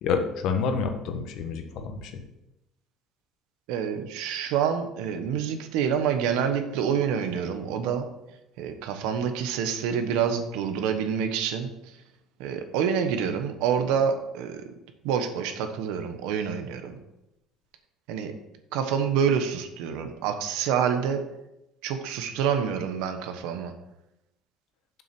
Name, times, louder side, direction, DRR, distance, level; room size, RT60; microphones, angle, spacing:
voice 1, 0.0-2.2, left 5 dB, 60° left, 6 dB, 1.3 m, -28 dB
voice 2, 3.7-8.1 8.6-12.0 12.4-14.6 15.0-17.0 18.1-18.3 18.7-21.2 21.8-23.7, right 7 dB, 85° right, 7 dB, 1.2 m, -27 dB
7.5 x 6.3 x 6.1 m, 0.90 s
cardioid pair, 160°, 0 cm